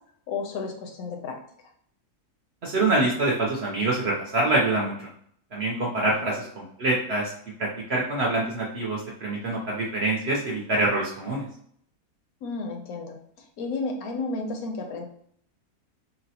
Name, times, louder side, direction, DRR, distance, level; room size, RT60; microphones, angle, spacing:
voice 1, 0.3-1.4 6.0-6.2 12.4-13.2 13.6-15.1, left 3 dB, 75° left, 3 dB, 1.0 m, -32 dB
voice 2, 2.6-4.9 5.5-7.3 7.6-11.5, right 2 dB, 60° right, -3 dB, 0.7 m, -25 dB
3.9 x 2.0 x 2.7 m, 0.64 s
omnidirectional pair, 1.7 m